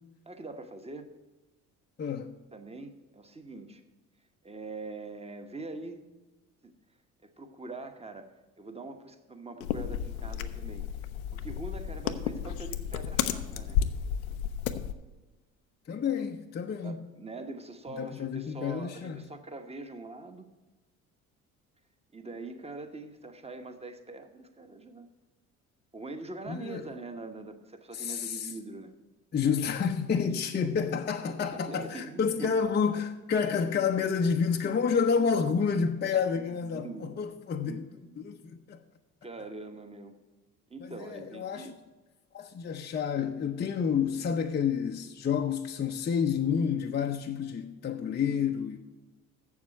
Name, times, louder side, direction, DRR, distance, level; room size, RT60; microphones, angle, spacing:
voice 1, 0.3-1.1 2.5-3.8 4.4-6.0 6.6-6.7 7.2-10.9 11.3-13.8 16.2-16.3 16.8-20.5 22.1-25.1 25.9-28.9 31.3-32.5 36.3-37.2 37.6-38.3 39.2-40.1 40.7-41.7, right 3 dB, 15° right, 1.2 m, -43 dB
voice 2, 2.0-2.4 15.9-17.0 17.9-19.2 26.5-26.8 27.9-28.5 29.3-37.9 38.2-38.8 40.8-41.7 42.3-48.8, left 6 dB, 25° left, 0.6 m, -29 dB
sound 1, 9.6-14.9, left 9 dB, 80° left, 0.6 m, -32 dB
7.1 x 7.1 x 7.8 m
hypercardioid pair, 55°, 42 cm